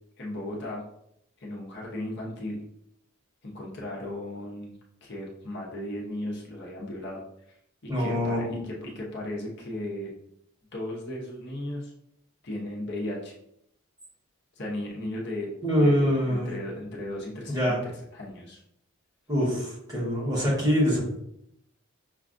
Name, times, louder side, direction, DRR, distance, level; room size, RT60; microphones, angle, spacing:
voice 1, 0.2-0.8 1.4-2.6 3.4-7.2 7.8-10.1 10.7-11.9 12.4-13.3 14.6-15.5 15.8-18.6, left 1 dB, 50° left, -3 dB, 0.8 m, -36 dB
voice 2, 7.9-8.6 15.6-16.5 17.5-17.8 19.3-21.0, equal, 15° right, -5 dB, 1.3 m, -24 dB
5.9 x 2.3 x 2.5 m, 0.75 s
head